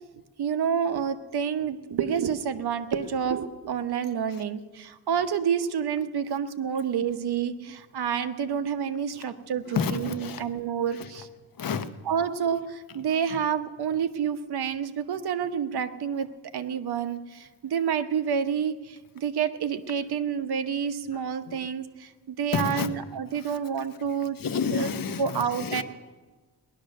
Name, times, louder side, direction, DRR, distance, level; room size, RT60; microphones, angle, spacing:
voice 1, 0.4-11.3 12.1-24.4 24.7-24.9 25.2-25.8, right 7 dB, 65° right, 9 dB, 1.0 m, -29 dB
voice 2, 9.7-10.4 10.9-11.1 11.6-11.9 13.3-13.4 21.1-21.7 22.5-22.9 23.3-23.6 24.4-25.8, left 6 dB, 55° left, 10 dB, 1.0 m, -30 dB
18.0 x 11.5 x 6.5 m, 1.3 s
wide cardioid pair, 135°, 41 cm